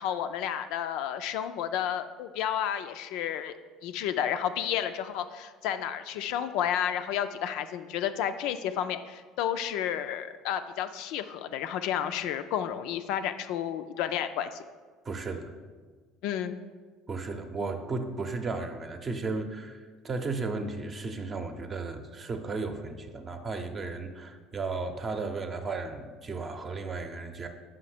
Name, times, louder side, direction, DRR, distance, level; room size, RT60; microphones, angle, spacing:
voice 1, 0.0-3.6 3.8-14.6 16.2-16.6, left 9 dB, 65° left, 10 dB, 0.3 m, -31 dB
voice 2, 15.0-15.5 17.1-27.5, right 3 dB, 35° right, 7 dB, 0.7 m, -34 dB
5.7 x 5.1 x 4.9 m, 1.5 s
hypercardioid pair, 65°, 0 cm